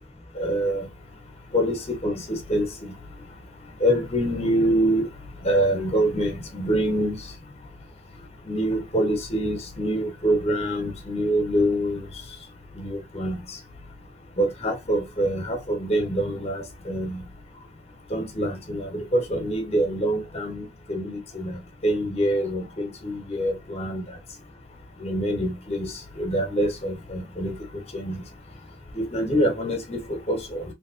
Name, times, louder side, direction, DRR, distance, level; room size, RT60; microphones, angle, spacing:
voice 1, 0.4-0.9 1.5-2.9 3.8-5.0 5.4-7.2 8.5-12.1 12.8-13.4 14.4-17.2 18.1-24.0 25.0-25.9 26.2-27.6 27.9-28.2 28.9-30.6, right 1 dB, 35° left, 1.0 m, -25 dB
3.4 x 2.7 x 2.5 m
head